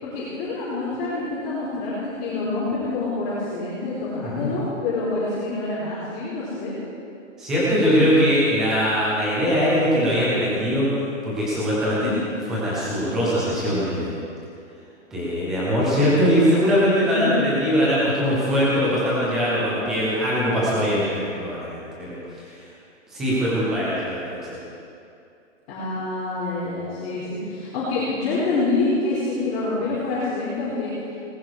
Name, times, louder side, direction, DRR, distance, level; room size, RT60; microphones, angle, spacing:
voice 1, 0.0-6.7 11.9-12.2 17.0-17.4 25.7-30.9, left 3 dB, 30° left, -10 dB, 4.5 m, -27 dB
voice 2, 7.4-10.9 11.2-12.1 12.5-14.2 15.1-22.6 23.1-24.5, equal, ahead, -8 dB, 0.4 m, -21 dB
18.5 x 15.0 x 4.8 m, 2.6 s
hypercardioid pair, 160°, 39 cm